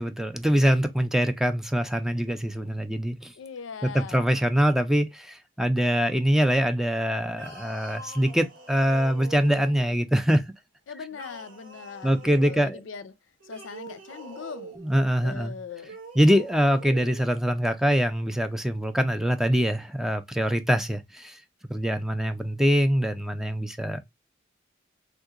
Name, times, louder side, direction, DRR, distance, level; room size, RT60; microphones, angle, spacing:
voice 1, 0.0-3.3 3.8-10.4 12.0-12.8 14.8-15.6 16.2-21.4 21.7-24.0, equal, ahead, 0.3 m, -24 dB
voice 2, 3.4-4.3 10.9-13.1 13.5-14.8 15.2-16.0, left 6 dB, 80° left, 0.4 m, -40 dB
sound 1, 7.3-10.0 11.1-12.6 13.4-14.9 15.8-17.3, right 2 dB, 80° right, 1.3 m, -44 dB
3.5 x 2.8 x 2.4 m
head